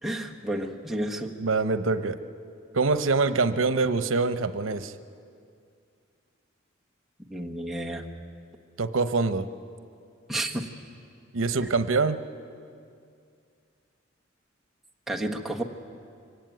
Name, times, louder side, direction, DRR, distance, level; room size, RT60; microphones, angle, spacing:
voice 1, 0.0-1.4 7.3-8.0 10.3-10.7 15.1-15.6, right 1 dB, ahead, -1 dB, 1.4 m, -31 dB
voice 2, 1.4-2.2 2.7-4.9 8.8-9.5 11.3-12.2, right 4 dB, 85° right, 12 dB, 0.9 m, -24 dB
24.0 x 17.0 x 9.2 m, 2.4 s
head